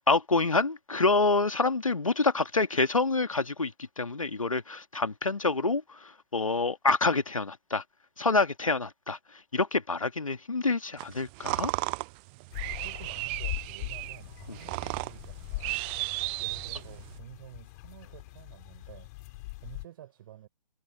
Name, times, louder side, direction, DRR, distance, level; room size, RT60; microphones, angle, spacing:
voice 1, 0.1-7.8 8.2-9.2 9.5-11.7, left 3 dB, 75° left, 1.9 m, -27 dB
sound 1, 11.0-17.2, right 32 dB, 20° right, 0.4 m, -35 dB
sound 2, 12.5-19.8, left 22 dB, 30° left, 3.4 m, -41 dB
voice 2, 12.8-15.8 16.4-19.1 19.6-20.5, right 12 dB, 40° right, 7.3 m, -50 dB
figure-of-eight pair, 125°, 17 cm